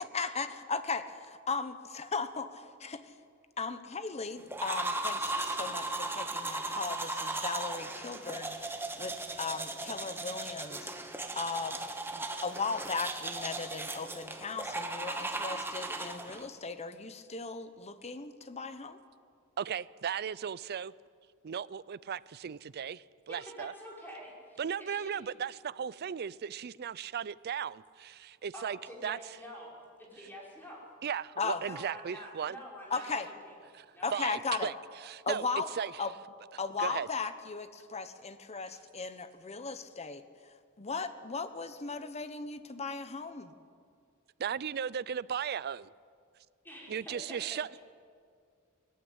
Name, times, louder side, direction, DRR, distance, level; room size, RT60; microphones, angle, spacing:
voice 1, 0.1-3.1 3.6-11.8 12.1-19.0 31.4-31.6 32.9-33.3 34.0-34.7 35.3-35.7 36.0-36.1 36.6-40.2 40.8-43.5, left 4 dB, 30° left, 1.0 m, -37 dB
sound 1, 4.5-16.5, right 2 dB, 10° right, 1.3 m, -37 dB
voice 2, 19.6-20.9 21.4-23.7 24.6-28.8 29.0-29.2 31.0-32.6 33.8-33.9 34.1-34.7 35.0-35.5 35.7-35.9 36.8-37.1 44.4-45.9 46.9-47.8, right 7 dB, 50° right, 0.4 m, -36 dB
voice 3, 23.3-25.2 28.5-30.8 31.6-33.6 33.9-34.1 46.6-47.8, equal, 10° left, 5.3 m, -47 dB
18.5 x 15.0 x 9.6 m
head